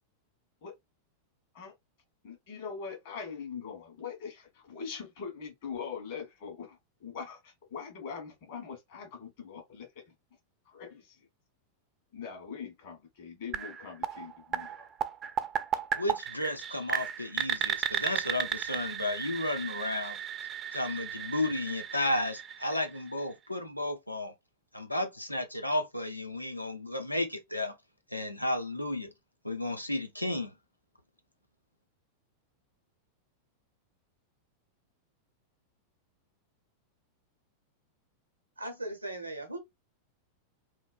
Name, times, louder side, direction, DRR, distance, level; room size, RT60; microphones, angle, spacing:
voice 1, 2.2-10.1 10.6-11.3 12.1-14.9, left 6 dB, 55° left, 1.2 m, -42 dB
sound 1, 13.5-23.3, right 9 dB, 25° right, 0.3 m, -35 dB
voice 2, 15.9-20.2 20.7-24.3 24.7-27.7 28.1-29.1 29.4-30.5, left 1 dB, 85° left, 0.5 m, -33 dB
voice 3, 38.6-39.6, right 1 dB, 85° right, 0.7 m, -38 dB
2.9 x 2.2 x 2.4 m
figure-of-eight pair, 90°, 0 cm